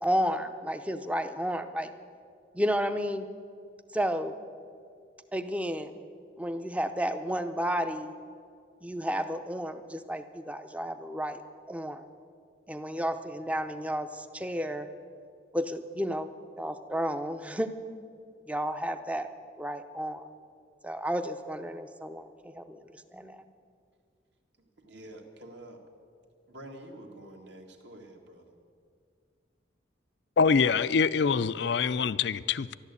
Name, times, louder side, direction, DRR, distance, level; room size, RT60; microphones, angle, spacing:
voice 1, 0.0-1.9 2.5-3.3 3.9-4.3 5.3-6.0 6.4-8.1 8.8-11.4 11.7-12.1 12.7-14.9 15.5-17.8 18.5-19.3 19.6-20.3 20.8-22.8 23.1-23.4, equal, 5° right, 9 dB, 0.6 m, -32 dB
voice 2, 24.6-25.8 26.5-28.6, right 1 dB, 60° right, 2 dB, 1.9 m, -48 dB
voice 3, 30.4-32.7, left 5 dB, 60° left, 16 dB, 0.4 m, -25 dB
13.5 x 12.0 x 8.2 m, 2.2 s
head